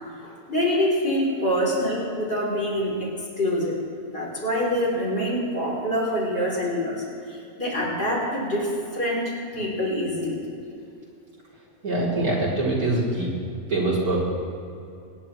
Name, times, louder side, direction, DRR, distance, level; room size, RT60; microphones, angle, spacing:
voice 1, 0.2-3.1 3.4-3.8 4.1-10.4, equal, 40° left, -5 dB, 3.9 m, -25 dB
voice 2, 11.8-13.3 13.7-14.2, right 2 dB, 80° right, -7 dB, 4.1 m, -23 dB
24.5 x 10.5 x 3.3 m, 2.5 s
omnidirectional pair, 1.6 m